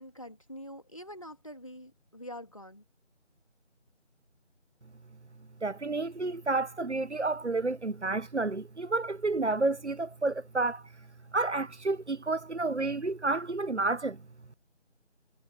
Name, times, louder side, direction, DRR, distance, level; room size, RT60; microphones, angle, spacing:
voice 1, 0.0-2.8, equal, 25° left, 2.8 m, -45 dB
voice 2, 5.6-10.8 11.3-14.2, right 3 dB, 65° right, 0.9 m, -30 dB
figure-of-eight pair, 175°, 37 cm